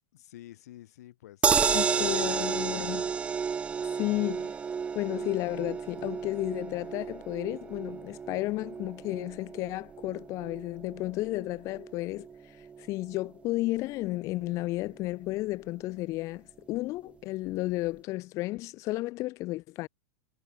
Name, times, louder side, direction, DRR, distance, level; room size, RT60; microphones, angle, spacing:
voice 1, 0.1-3.1, left 14 dB, 75° left, 6.8 m, -49 dB
sound 1, 1.4-13.7 14.0-14.1 14.4-14.5, right 6 dB, 15° right, 0.4 m, -32 dB
voice 2, 1.7-3.0 4.0-4.6 4.9-12.3 12.8-19.9, left 19 dB, 35° left, 1.3 m, -33 dB
supercardioid pair, 145°, 9 cm